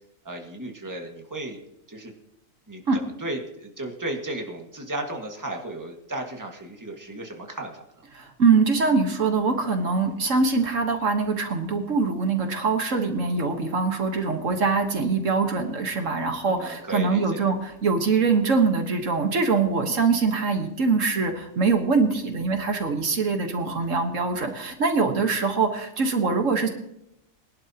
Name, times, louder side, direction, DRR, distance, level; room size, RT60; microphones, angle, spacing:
voice 1, 0.3-1.6 1.9-2.1 2.7-2.8 3.2-7.8 16.5-17.5, right 1 dB, 15° right, 1 dB, 1.9 m, -34 dB
voice 2, 8.1-26.7, right 4 dB, 70° right, 5 dB, 1.8 m, -23 dB
21.5 x 11.5 x 3.0 m, 0.80 s
omnidirectional pair, 1.4 m